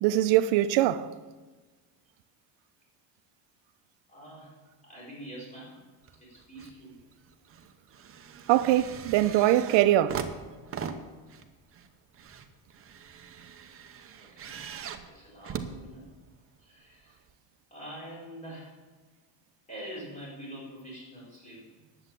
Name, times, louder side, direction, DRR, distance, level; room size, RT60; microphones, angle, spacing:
voice 1, 0.0-1.1 8.5-10.2, right 13 dB, 70° right, 0.8 m, -22 dB
voice 2, 4.1-4.6 4.8-5.8 6.2-7.0 14.2-14.6 15.0-16.1 16.6-17.2 17.7-18.7 19.7-21.6, right 1 dB, 15° left, 4.7 m, -45 dB
sound 1, 6.0-6.8 7.1-16.5 17.3-17.4, right 7 dB, 30° right, 0.8 m, -41 dB
10.5 x 8.0 x 7.5 m
cardioid pair, 150°, 47 cm